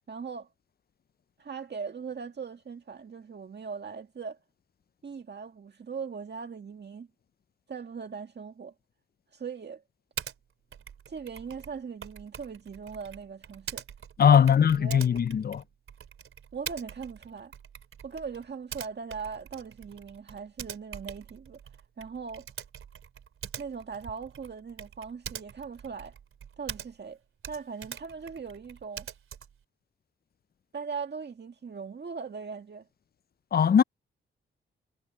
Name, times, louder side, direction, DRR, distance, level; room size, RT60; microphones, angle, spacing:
voice 1, 0.1-0.5 1.4-4.4 5.0-7.1 7.7-8.7 9.3-9.8 11.1-13.8 14.2-15.1 16.5-17.5 18.0-21.6 22.0-22.5 23.6-26.2 26.6-27.2 27.5-29.1 30.7-32.9, right 5 dB, 55° right, 1.9 m, -39 dB
Typing, 10.2-10.4 10.7-27.1 27.4-29.6, right 8 dB, 80° right, 3.4 m, -44 dB
voice 2, 14.2-15.6 33.5-33.8, left 8 dB, 45° left, 0.5 m, -20 dB
cardioid pair, 60°, 21 cm